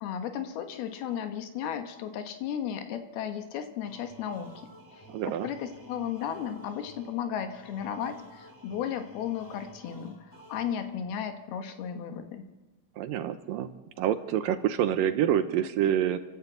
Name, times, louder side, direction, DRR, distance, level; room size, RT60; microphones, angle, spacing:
voice 1, 0.0-12.5, left 9 dB, 80° left, 7 dB, 3.2 m, -35 dB
sound 1, 3.8-11.2, equal, 15° left, 0.8 m, -52 dB
voice 2, 5.1-5.5 13.0-13.7 14.0-16.2, right 10 dB, 75° right, 10 dB, 2.3 m, -27 dB
30.0 x 12.0 x 8.1 m, 1.2 s
omnidirectional pair, 4.4 m